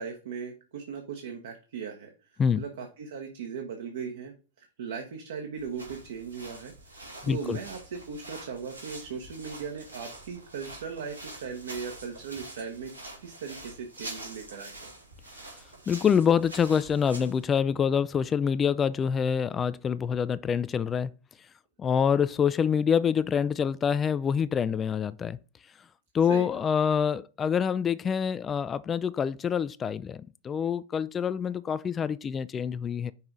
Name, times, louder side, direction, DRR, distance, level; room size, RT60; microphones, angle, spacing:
voice 1, 0.0-2.1 2.5-12.9 13.2-14.9 26.3-26.5, right 6 dB, 60° right, 1.1 m, -38 dB
sound 1, 5.6-17.4, right 1 dB, 85° right, 2.9 m, -45 dB
voice 2, 7.2-7.6 15.9-21.1 21.8-25.4 26.1-33.1, left 7 dB, 20° left, 0.3 m, -26 dB
5.6 x 4.8 x 3.8 m
figure-of-eight pair, 90°, 0 cm